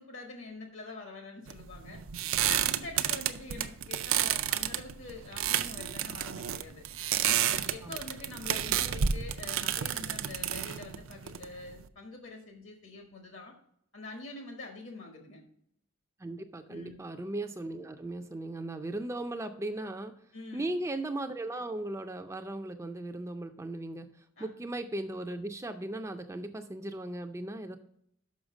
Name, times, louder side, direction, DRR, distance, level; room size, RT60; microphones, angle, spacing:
voice 1, 0.0-2.0 2.4-6.8 7.3-13.5 13.9-15.4 16.7-17.0 20.3-20.7 24.4-24.5, left 3 dB, 65° left, 3 dB, 1.2 m, -45 dB
sound 1, 1.5-11.9, right 10 dB, 80° right, 0.5 m, -31 dB
voice 2, 16.2-20.1 20.5-24.1 24.4-27.8, right 1 dB, 15° right, 6 dB, 0.4 m, -37 dB
6.4 x 5.6 x 6.1 m, 0.72 s
head